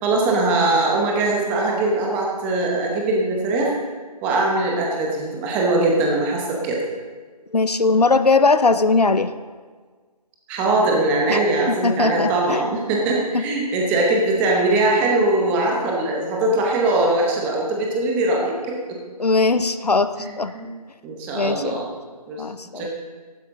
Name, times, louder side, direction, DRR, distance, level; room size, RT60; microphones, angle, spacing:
voice 1, 0.0-3.7 4.2-6.8 10.5-19.0 20.2-20.7 21.0-21.9 22.3-22.4 22.8-22.9, right 2 dB, 10° right, -1 dB, 0.8 m, -21 dB
voice 2, 7.5-9.3 11.3-11.4 11.7-12.6 13.3-13.4 19.2-20.1 20.4-20.5 21.3-21.8 22.4-22.9, left 3 dB, 80° left, 12 dB, 0.8 m, -19 dB
14.5 x 12.0 x 3.7 m, 1.5 s
figure-of-eight pair, 155°, 20 cm